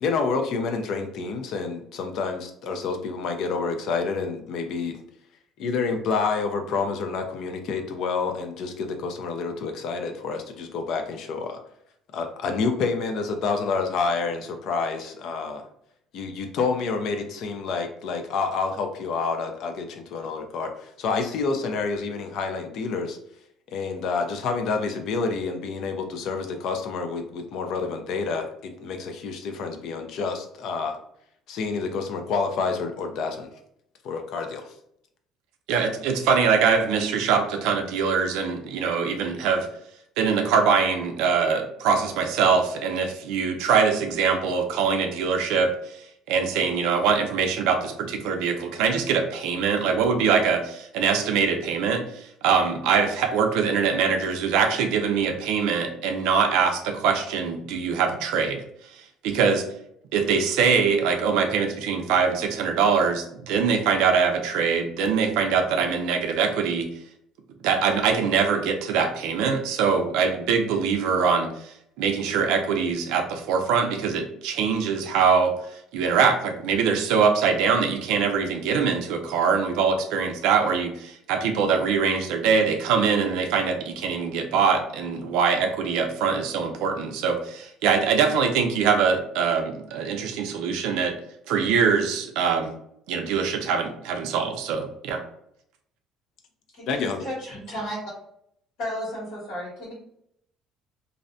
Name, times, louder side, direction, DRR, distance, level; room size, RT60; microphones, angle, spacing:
voice 1, 0.0-4.9 5.6-11.6 12.1-15.6 16.1-23.2 23.7-31.0 31.5-33.5 34.0-34.7 96.9-97.3, left 4 dB, 55° left, 5 dB, 0.4 m, -28 dB
voice 2, 35.7-39.7 40.2-58.6 58.9-59.6 60.1-66.9 67.6-75.6 75.9-91.2 91.5-92.7 93.1-95.2, right 6 dB, 85° right, 5 dB, 0.4 m, -23 dB
voice 3, 96.7-98.1 98.8-99.9, equal, 80° left, -5 dB, 1.3 m, -33 dB
2.5 x 2.1 x 2.5 m, 0.72 s
cardioid pair, 170°, 0 cm